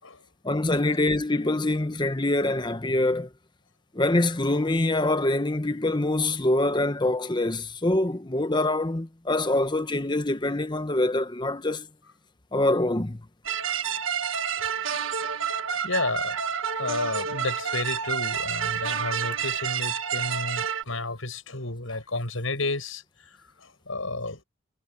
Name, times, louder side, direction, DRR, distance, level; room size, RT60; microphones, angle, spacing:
voice 1, 0.4-3.3 3.9-11.9 12.5-13.2, left 2 dB, 20° left, 1.0 m, -25 dB
sound 1, 13.5-20.8, right 7 dB, 70° right, 1.6 m, -29 dB
voice 2, 15.8-16.4 16.8-24.4, left 2 dB, 75° left, 6.7 m, -32 dB
head